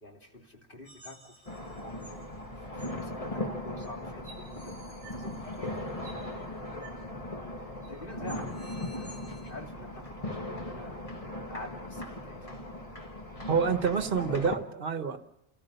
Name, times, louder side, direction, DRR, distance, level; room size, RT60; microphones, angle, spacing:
voice 1, 0.0-2.3 2.6-4.7 5.1-6.3 7.9-8.7 9.0-12.6, left 1 dB, 50° left, 0 dB, 3.2 m, -48 dB
sound 1, 0.8-2.2 2.8-2.9 3.8-3.9 4.2-6.2 6.8-7.0 7.3-7.4 7.8-7.9 8.3-9.5, right 1 dB, 70° left, 8.2 m, -53 dB
sound 2, 1.5-14.6, left 1 dB, 30° left, 1.7 m, -38 dB
voice 2, 13.5-15.2, right 6 dB, 55° right, 9 dB, 1.3 m, -28 dB
28.5 x 14.0 x 6.8 m, 0.83 s
omnidirectional pair, 1.1 m